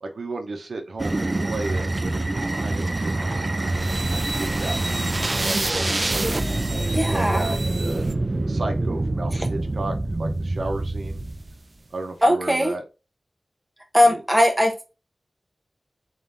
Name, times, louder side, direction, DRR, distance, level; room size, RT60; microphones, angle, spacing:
voice 1, 0.0-6.2 6.5-8.1 8.5-11.2 11.9-12.8 14.0-14.2, right 2 dB, 70° right, 4 dB, 0.7 m, -34 dB
sound 1, 1.0-11.6, right 2 dB, 30° right, 0.3 m, -25 dB
voice 2, 6.9-7.5 12.2-12.7 13.9-14.9, left 1 dB, 10° right, 2 dB, 0.8 m, -19 dB
4.0 x 3.7 x 2.5 m, 0.29 s
wide cardioid pair, 100°, 0 cm